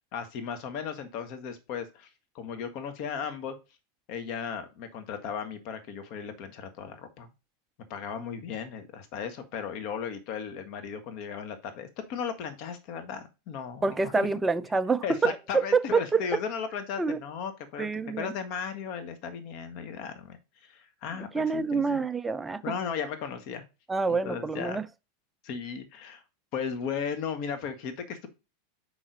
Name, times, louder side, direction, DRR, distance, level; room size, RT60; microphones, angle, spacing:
voice 1, 0.1-2.1 2.3-3.5 4.1-7.3 7.9-14.3 15.0-17.9 18.2-20.4 20.6-22.0 22.6-23.6 24.1-24.8 25.4-26.2 26.5-28.3, left 7 dB, 50° left, 1.4 m, -36 dB
voice 2, 13.8-16.4 17.0-17.2 17.8-18.3 21.3-22.7 23.9-24.9, right 4 dB, 15° right, 0.5 m, -27 dB
5.8 x 4.8 x 4.0 m
figure-of-eight pair, 90°, 0 cm